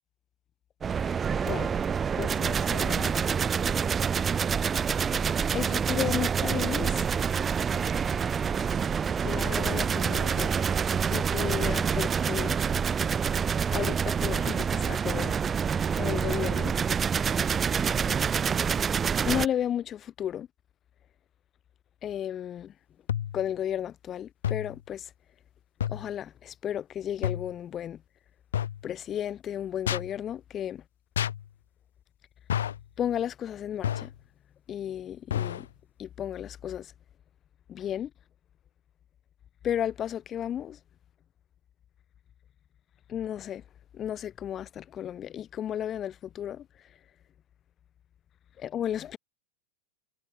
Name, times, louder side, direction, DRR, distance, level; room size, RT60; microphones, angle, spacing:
sound 1, 0.8-19.5, right 6 dB, 20° right, 1.2 m, -27 dB
voice 1, 1.4-1.8 2.2-3.3 5.5-7.1 9.2-10.8 11.1-12.9 13.7-15.3 15.9-16.8 19.2-20.5 22.0-22.7 23.3-25.1 25.9-28.0 28.8-30.8 33.0-34.1 34.7-35.7 36.0-36.9 37.7-38.1 39.6-40.8 43.1-43.6 43.9-46.9 48.6-49.2, left 10 dB, 25° left, 3.5 m, -33 dB
sound 2, 23.1-23.5 24.4-24.8 25.8-26.1 27.2-27.5 28.5-28.9 29.9-30.1 31.2-31.5 32.5-32.8 33.8-34.2 35.3-35.7, left 10 dB, 65° left, 1.0 m, -30 dB
figure-of-eight pair, 90°, 0 cm